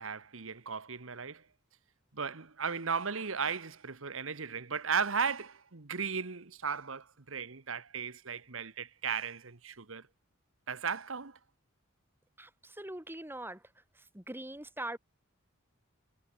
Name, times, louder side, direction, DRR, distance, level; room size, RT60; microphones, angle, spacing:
voice 1, 0.0-1.4 2.1-10.1 10.7-11.4, right 6 dB, 70° right, 1.4 m, -36 dB
voice 2, 12.4-13.6 14.1-15.0, right 1 dB, 10° right, 2.6 m, -42 dB
head